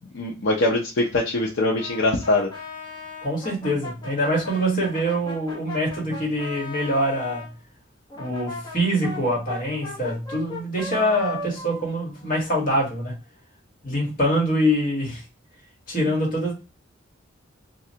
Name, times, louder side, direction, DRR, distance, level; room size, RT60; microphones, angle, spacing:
voice 1, 0.1-2.5, left 2 dB, 65° left, 0.5 m, -22 dB
Brass instrument, 1.7-7.5 8.1-12.9, left 2 dB, 20° left, 0.9 m, -37 dB
voice 2, 3.2-7.5 8.1-13.2 13.8-15.2 15.9-16.5, equal, 45° left, 1.3 m, -24 dB
3.2 x 2.4 x 2.7 m
head